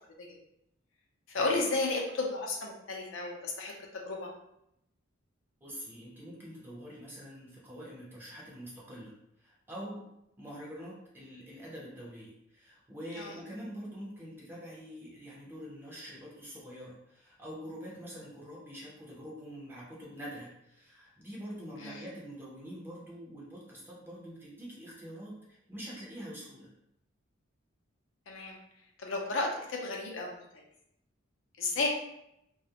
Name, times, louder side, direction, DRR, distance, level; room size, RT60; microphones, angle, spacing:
voice 1, 1.3-3.7 4.0-4.3 13.2-13.3 21.8-22.0 28.3-28.6 29.0-30.4 31.6-31.9, left 3 dB, 75° left, 0 dB, 0.5 m, -33 dB
voice 2, 5.6-9.1 9.4-10.0 10.4-26.7 31.7-31.8, equal, 10° right, -5 dB, 0.6 m, -45 dB
2.3 x 2.0 x 2.8 m, 0.80 s
head